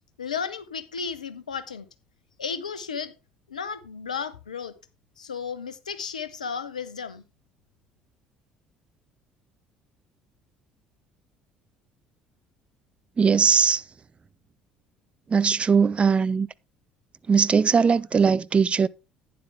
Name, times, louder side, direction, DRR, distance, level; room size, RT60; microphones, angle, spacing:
voice 1, 0.2-1.9 2.4-3.1 3.5-4.7 5.2-7.2, left 6 dB, 85° left, 0.9 m, -33 dB
voice 2, 13.2-13.8 15.3-16.5 17.3-18.9, right 5 dB, 30° right, 0.6 m, -20 dB
11.5 x 9.6 x 3.4 m
figure-of-eight pair, 55°, 4 cm